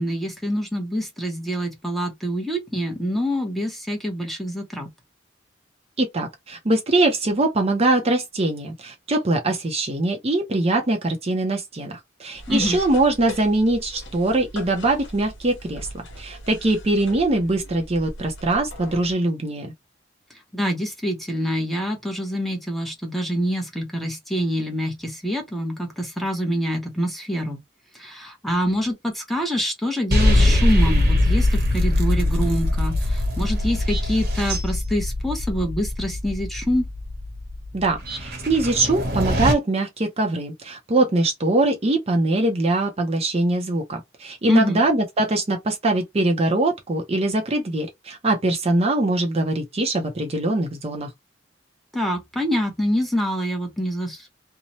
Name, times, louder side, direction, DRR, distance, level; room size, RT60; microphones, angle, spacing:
voice 1, 0.0-4.9 12.5-12.8 20.5-27.6 27.9-36.9 44.5-44.8 51.9-54.3, equal, ahead, 0.7 m, -26 dB
voice 2, 6.0-19.7 37.7-51.1, right 2 dB, 35° right, 0.6 m, -22 dB
sound 1, 12.3-19.1, left 1 dB, 85° left, 0.9 m, -39 dB
sound 2, 30.1-39.5, left 1 dB, 55° right, 1.0 m, -22 dB
2.7 x 2.1 x 2.9 m
head